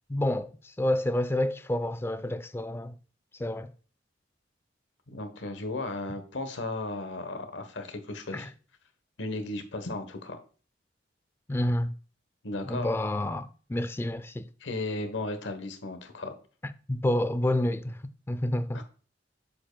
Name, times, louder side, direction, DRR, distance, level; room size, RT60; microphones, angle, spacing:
voice 1, 0.1-3.0 3.4-3.7 8.3-8.5 11.5-11.9 12.7-14.5 16.9-18.0 18.3-18.8, left 1 dB, 15° left, 0.3 m, -29 dB
voice 2, 5.1-8.5 9.2-10.4 12.4-12.9 14.6-16.3 18.7-18.8, left 2 dB, 80° left, 1.0 m, -35 dB
7.5 x 6.6 x 2.2 m
head